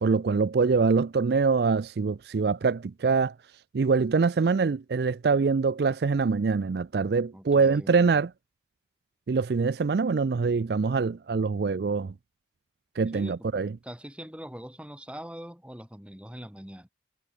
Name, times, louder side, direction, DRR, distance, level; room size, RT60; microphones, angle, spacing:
voice 1, 0.0-3.3 3.7-8.3 9.3-12.1 13.0-13.7, right 4 dB, 55° right, 0.4 m, -24 dB
voice 2, 7.3-8.3 13.1-16.9, equal, 5° right, 2.2 m, -43 dB
head